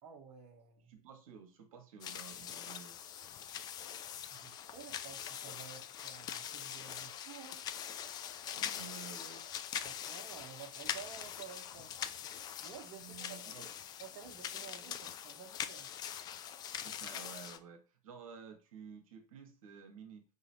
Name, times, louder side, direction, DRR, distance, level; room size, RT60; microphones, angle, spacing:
voice 1, 0.0-0.9 4.3-7.6 9.8-11.9 12.6-13.7 14.0-15.9, right 7 dB, 30° right, 1.0 m, -52 dB
voice 2, 0.9-3.0 8.5-9.5 12.9-13.7 16.8-20.2, right 6 dB, 60° right, 1.0 m, -52 dB
sound 1, 2.0-17.6, left 9 dB, 20° left, 0.4 m, -43 dB
4.9 x 2.9 x 2.9 m
figure-of-eight pair, 90°, 20 cm